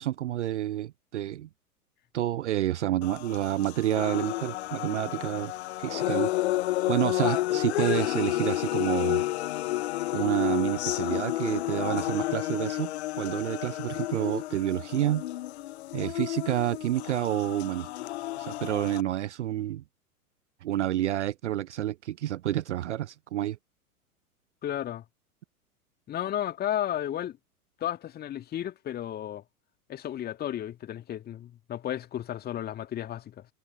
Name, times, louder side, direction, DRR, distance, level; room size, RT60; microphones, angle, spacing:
voice 1, 0.0-1.5 2.1-5.5 5.8-6.3 6.9-9.2 10.1-15.2 15.9-17.9 18.4-19.8 20.6-23.6, right 13 dB, 55° right, 0.5 m, -29 dB
sound 1, 3.0-19.0, left 16 dB, 45° left, 1.2 m, -31 dB
voice 2, 24.6-25.0 26.1-27.4 27.8-29.4 29.9-33.5, left 11 dB, 20° left, 2.1 m, -33 dB
figure-of-eight pair, 100°, 44 cm